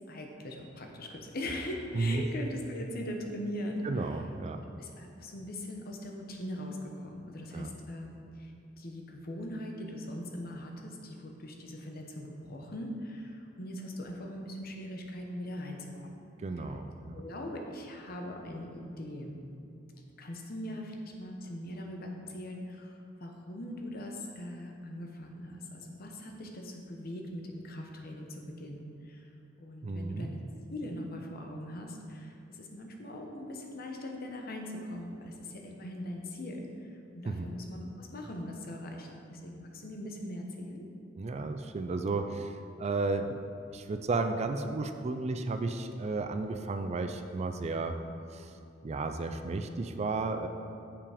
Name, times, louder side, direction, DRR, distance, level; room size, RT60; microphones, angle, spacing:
voice 1, 0.1-4.2 4.8-16.2 16.6-16.7 17.1-19.4 20.2-29.3 29.6-30.4 30.7-40.9, left 1 dB, 50° left, 2 dB, 0.9 m, -41 dB
voice 2, 1.9-2.2 3.8-4.6 7.5-7.7 16.4-17.2 29.8-30.3 37.3-37.5 41.2-43.4 43.7-48.0 48.3-48.5 48.8-50.5, right 3 dB, 35° right, 7 dB, 0.4 m, -33 dB
7.0 x 5.8 x 5.0 m, 2.7 s
head